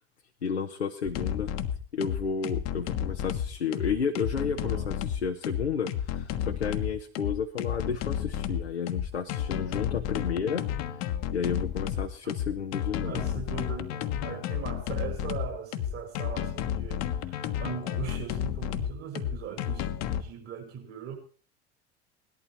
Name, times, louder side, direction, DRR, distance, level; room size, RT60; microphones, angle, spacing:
voice 1, 0.4-1.5 1.9-10.6 11.3-13.2, left 6 dB, 85° left, 3 dB, 1.0 m, -32 dB
sound 1, 1.0-20.2, left 10 dB, 50° left, 1.3 m, -31 dB
voice 2, 4.4-4.9 12.2-12.3 13.0-21.2, right 7 dB, 45° right, 3 dB, 5.4 m, -40 dB
18.0 x 11.5 x 4.5 m, 0.39 s
figure-of-eight pair, 70°, 32 cm